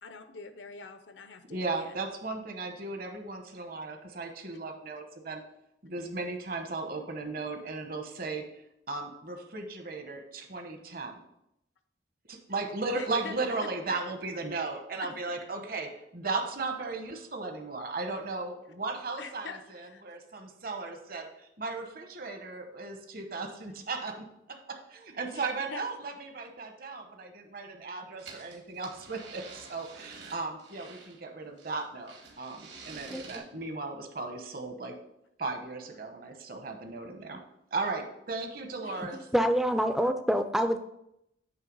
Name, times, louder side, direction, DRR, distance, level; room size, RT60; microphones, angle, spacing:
voice 1, 0.0-2.0 13.0-13.7 15.0-15.1 19.2-20.2 25.3-25.9 38.8-39.2, left 4 dB, 85° left, 9 dB, 0.7 m, -45 dB
voice 2, 1.5-5.4 5.8-8.4 8.9-11.2 12.3-24.2 24.9-34.9 35.4-37.4 37.7-39.2, right 3 dB, 50° right, 4 dB, 1.0 m, -36 dB
sound 1, 28.2-31.2 31.6-33.4, right 4 dB, 70° right, 1.7 m, -48 dB
voice 3, 33.1-33.4 39.3-40.8, equal, ahead, 8 dB, 0.4 m, -26 dB
9.1 x 3.3 x 5.3 m, 0.80 s
head